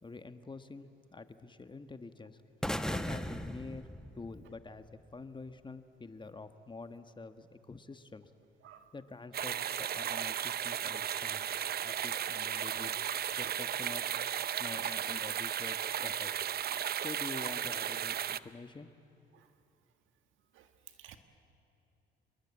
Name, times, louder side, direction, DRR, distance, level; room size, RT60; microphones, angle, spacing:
voice 1, 0.0-2.4 2.9-3.9 4.1-8.2 8.9-11.5 11.8-12.9 13.4-14.1 14.6-16.3 17.0-18.9, left 3 dB, 25° left, 10 dB, 1.4 m, -47 dB
sound 1, 2.6-4.7, left 1 dB, 5° left, 1.2 m, -37 dB
voice 2, 8.6-8.8 19.3-19.5 20.5-20.7 21.0-21.2, right 11 dB, 90° right, 8 dB, 1.9 m, -54 dB
sound 2, 9.3-18.4, right 9 dB, 50° right, 0.7 m, -35 dB
27.5 x 21.5 x 8.6 m, 2.8 s
cardioid pair, 90°, 20 cm